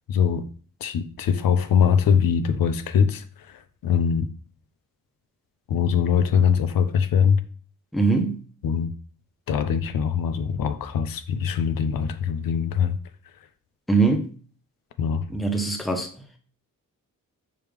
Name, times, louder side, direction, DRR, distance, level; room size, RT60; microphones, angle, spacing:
voice 1, 0.1-0.5 0.8-3.2 3.8-4.3 5.7-7.4 8.6-8.9 9.5-13.0 15.0-15.2, left 7 dB, 85° left, 0.5 m, -22 dB
voice 2, 7.9-8.4 13.9-14.3 15.3-16.1, right 3 dB, ahead, 0.5 m, -22 dB
4.8 x 3.3 x 3.4 m
wide cardioid pair, 155°, 33 cm